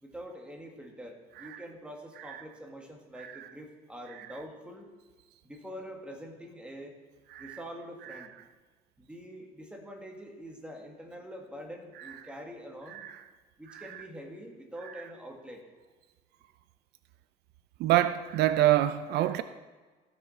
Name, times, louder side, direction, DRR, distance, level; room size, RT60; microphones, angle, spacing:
voice 1, 0.0-4.9 5.4-6.9 7.4-8.3 9.0-13.0 13.6-15.6, equal, 5° right, 1 dB, 1.9 m, -45 dB
voice 2, 17.8-19.4, right 13 dB, 75° right, 12 dB, 0.5 m, -26 dB
15.5 x 6.2 x 4.3 m, 1.3 s
cardioid pair, 110°, 17 cm